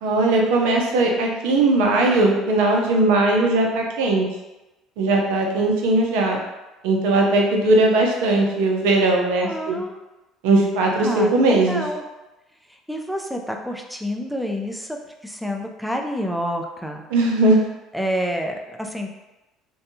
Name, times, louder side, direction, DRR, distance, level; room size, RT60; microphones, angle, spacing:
voice 1, 0.0-4.3 5.0-6.4 6.8-9.8 10.4-11.8 17.1-17.6, right 2 dB, 85° right, 0 dB, 0.5 m, -19 dB
voice 2, 9.4-10.0 11.0-12.0 12.9-15.0 15.2-17.0 17.9-19.1, equal, ahead, 2 dB, 0.4 m, -28 dB
2.6 x 2.2 x 2.6 m, 1.0 s
supercardioid pair, 85°, 0 cm